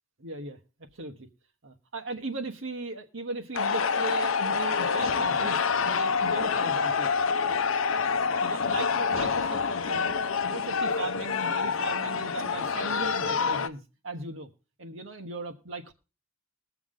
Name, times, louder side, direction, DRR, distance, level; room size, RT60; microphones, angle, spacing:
voice 1, 0.2-0.6 0.9-1.3 1.6-7.1 7.4-10.1 10.4-14.5 14.8-15.9, right 2 dB, 65° right, 5 dB, 1.2 m, -38 dB
sound 1, 3.5-13.7, left 5 dB, 75° left, 0.7 m, -27 dB
20.5 x 7.1 x 3.7 m, 0.31 s
head